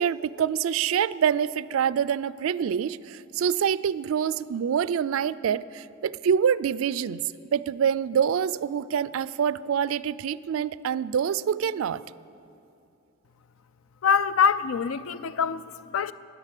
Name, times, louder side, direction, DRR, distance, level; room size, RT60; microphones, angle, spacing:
voice 1, 0.0-7.2 7.5-12.0, right 8 dB, 85° right, 0.3 m, -26 dB
voice 2, 14.0-16.1, left 6 dB, 85° left, 0.4 m, -24 dB
14.5 x 10.5 x 6.6 m
head